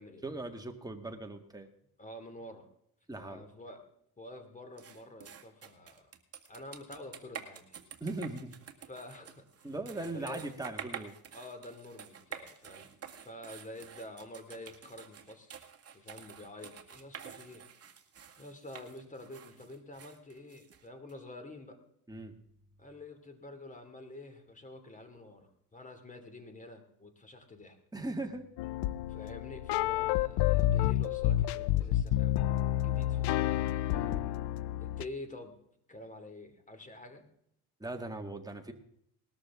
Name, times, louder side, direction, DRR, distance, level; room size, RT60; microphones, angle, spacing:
voice 1, 0.2-1.7 3.1-3.5 8.0-8.5 9.6-11.1 22.1-22.3 27.9-28.5 33.9-34.2 37.8-38.7, right 2 dB, 10° right, 4 dB, 1.8 m, -39 dB
voice 2, 2.0-2.7 3.1-3.8 4.2-6.1 6.5-7.8 8.8-9.7 10.1-10.7 11.3-12.9 13.2-15.5 15.9-17.6 18.4-21.8 22.8-27.8 29.1-32.4 32.8-33.7 34.8-35.6 35.9-37.3, left 2 dB, 20° left, 7 dB, 2.6 m, -48 dB
sound 1, 4.8-21.1, right 7 dB, 35° right, 2.0 m, -49 dB
sound 2, 28.6-35.0, left 14 dB, 85° left, 0.6 m, -29 dB
19.5 x 13.0 x 3.7 m, 0.72 s
cardioid pair, 105°, 41 cm